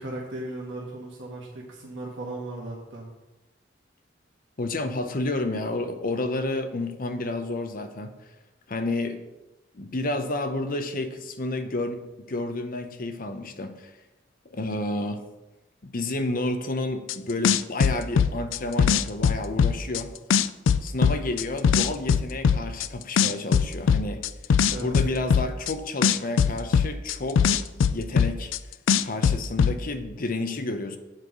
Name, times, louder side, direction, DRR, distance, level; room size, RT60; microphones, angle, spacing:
voice 1, 0.0-3.1 24.7-24.9, right 2 dB, 70° right, -3 dB, 1.5 m, -36 dB
voice 2, 4.6-8.1 8.7-9.2 9.7-13.9 14.5-15.2 15.8-20.1 20.8-24.2 24.8-28.5 29.0-31.0, left 2 dB, 45° left, 8 dB, 0.7 m, -30 dB
sound 1, 17.1-17.2 17.4-20.0 20.3-22.9 23.2-25.7 26.0-28.6 28.9-29.7, left 7 dB, 80° left, 0.4 m, -20 dB
7.6 x 4.7 x 6.0 m, 1.0 s
head